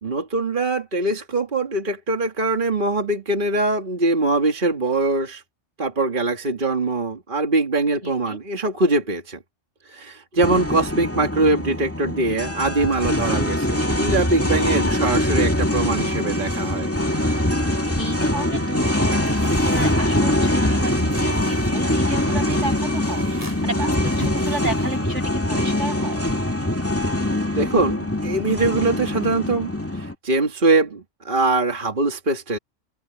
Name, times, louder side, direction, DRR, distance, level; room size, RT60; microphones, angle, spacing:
voice 1, 0.0-5.4 5.8-9.4 9.9-16.9 27.5-32.6, right 2 dB, 45° right, 2.0 m, -22 dB
voice 2, 8.0-8.4 18.0-19.2 19.6-26.2, right 2 dB, 75° right, 8.5 m, -32 dB
sound 1, 10.4-30.1, left 1 dB, 10° left, 2.2 m, -23 dB
sound 2, 19.3-25.4, equal, 15° right, 7.5 m, -39 dB
open air
omnidirectional pair, 1.2 m